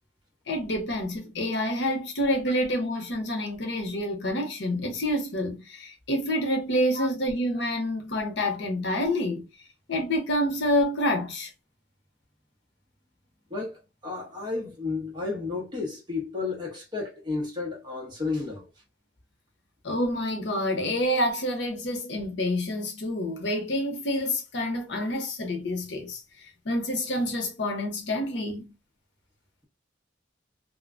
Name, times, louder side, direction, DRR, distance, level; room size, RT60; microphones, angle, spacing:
voice 1, 0.5-9.5 9.9-11.5 19.8-26.2 26.6-28.7, left 1 dB, 70° left, 0.7 m, -28 dB
voice 2, 13.5-18.7, left 3 dB, 25° right, 0.9 m, -32 dB
2.4 x 2.1 x 2.4 m
head